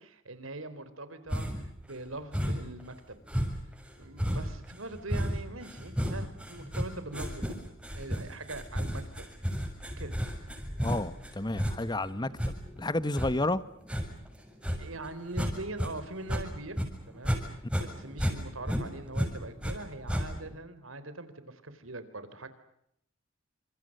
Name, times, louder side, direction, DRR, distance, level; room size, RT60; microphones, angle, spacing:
voice 1, 0.0-3.2 4.0-7.6 7.9-9.2 10.0-10.2 14.8-16.8 17.1-17.4 17.8-22.5, right 2 dB, 85° right, 12 dB, 4.1 m, -42 dB
sound 1, 1.3-1.7 2.3-2.8 3.3-15.9 16.2-17.4 17.7-19.8 20.1-20.6, equal, 5° right, 6.9 m, -33 dB
voice 2, 10.8-12.3 12.8-13.6, left 2 dB, 20° left, 15 dB, 1.1 m, -30 dB
30.0 x 27.0 x 6.7 m, 0.74 s
head